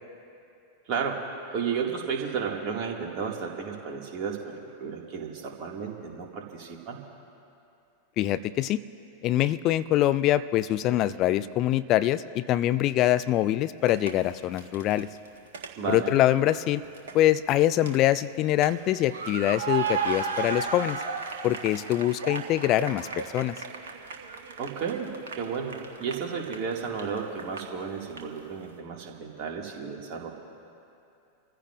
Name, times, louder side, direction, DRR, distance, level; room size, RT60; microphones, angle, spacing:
voice 1, 0.9-1.2 1.5-7.0 15.8-16.1 24.6-25.1 25.4-30.3, right 6 dB, 40° right, 0 dB, 2.1 m, -33 dB
voice 2, 8.2-8.8 9.2-15.1 15.9-16.8 17.1-21.0 21.4-23.6, left 13 dB, 35° left, 14 dB, 0.4 m, -24 dB
sound 1, 13.9-14.1 14.6-16.2 16.5-17.1 17.5-18.7 19.0-27.8 28.1-28.2, right 5 dB, 60° right, 1.4 m, -34 dB
28.0 x 15.0 x 2.6 m, 2.7 s
figure-of-eight pair, 90°, 0 cm